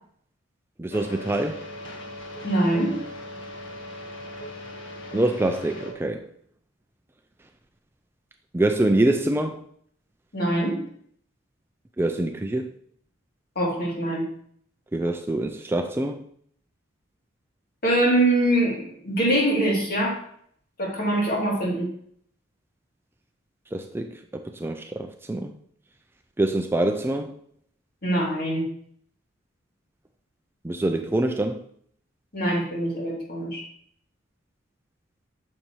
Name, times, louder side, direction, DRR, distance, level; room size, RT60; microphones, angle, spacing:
voice 1, 0.8-1.6 5.1-6.3 8.5-9.6 12.0-12.7 14.9-16.3 23.7-25.5 26.4-27.4 30.6-31.6, right 1 dB, 10° right, 0.3 m, -25 dB
sound 1, 0.9-5.9, left 1 dB, 65° left, 1.5 m, -39 dB
voice 2, 2.4-3.0 10.3-10.8 13.5-14.2 17.8-20.2 20.8-21.9 28.0-28.6 32.3-33.6, right 1 dB, 50° left, 2.9 m, -23 dB
9.3 x 6.6 x 3.1 m
head